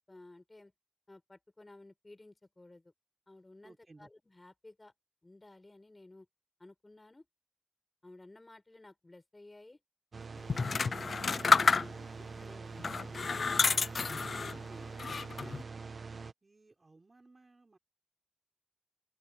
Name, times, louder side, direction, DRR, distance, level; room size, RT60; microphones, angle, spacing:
voice 1, 0.1-0.7 1.1-2.9 3.3-4.9 5.2-6.3 6.6-7.3 8.0-9.8 10.5-12.0 12.4-13.0, left 2 dB, 30° left, 6.9 m, -55 dB
voice 2, 3.6-4.1 14.5-15.1 15.4-16.0 16.4-17.8, right 3 dB, 45° right, 4.3 m, -59 dB
sound 1, 10.1-16.3, right 4 dB, 70° right, 1.0 m, -44 dB
sound 2, 10.5-12.2 12.8-14.6 15.0-15.6, left 5 dB, 75° left, 0.4 m, -29 dB
open air
wide cardioid pair, 65°, 0 cm